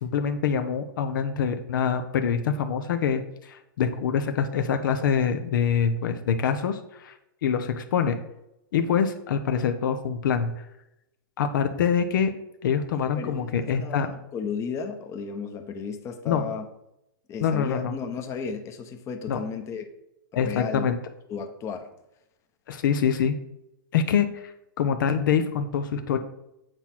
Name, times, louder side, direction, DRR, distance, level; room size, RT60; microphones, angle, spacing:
voice 1, 0.0-7.1 7.4-8.2 8.7-10.6 11.4-12.3 12.6-14.1 16.3-16.4 17.4-17.9 19.3-19.4 20.3-21.0 22.7-23.4 23.9-24.5 24.8-26.2, left 7 dB, 65° left, 8 dB, 0.8 m, -25 dB
voice 2, 12.9-16.6 17.3-19.9 20.4-20.9 21.3-21.9, left 6 dB, 25° left, 6 dB, 0.9 m, -34 dB
8.1 x 4.3 x 6.0 m, 0.86 s
hypercardioid pair, 135°, 12 cm